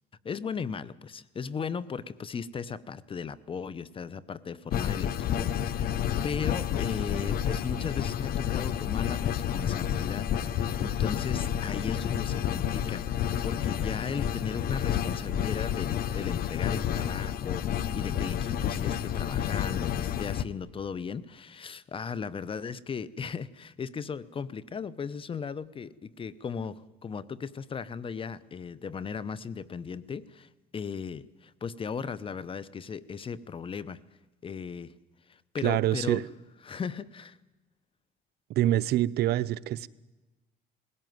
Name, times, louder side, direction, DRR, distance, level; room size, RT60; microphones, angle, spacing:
voice 1, 0.2-5.9 6.2-10.3 10.8-34.0 34.4-34.9 35.3-36.2 36.6-37.4, left 6 dB, 30° left, 0.8 m, -37 dB
sound 1, 4.7-20.4, left 9 dB, 60° left, 0.9 m, -30 dB
voice 2, 35.6-36.2 38.6-39.9, right 13 dB, 70° right, 0.7 m, -25 dB
19.5 x 16.5 x 9.4 m
cardioid pair, 110°, 17 cm